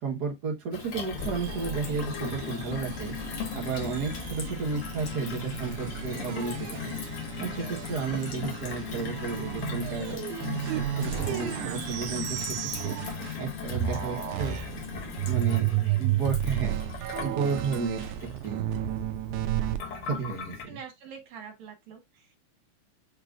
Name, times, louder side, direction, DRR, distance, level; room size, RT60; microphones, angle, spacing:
voice 1, 0.0-3.1 3.5-7.0 7.4-10.2 10.7-13.0 13.4-14.6 15.3-15.7 16.0-16.8 17.2-18.7 20.0-20.8, right 5 dB, 45° right, 1.4 m, -32 dB
Gurgling / Water tap faucet / Sink (filling or washing), 0.7-20.6, left 7 dB, 55° left, 1.8 m, -38 dB
sound 1, 1.2-13.5 13.7-19.8, right 12 dB, 90° right, 2.0 m, -33 dB
voice 2, 3.8-4.2 15.7-16.0 19.6-20.1 20.7-22.4, right 7 dB, 70° right, 2.7 m, -46 dB
6.5 x 3.1 x 2.5 m
omnidirectional pair, 3.4 m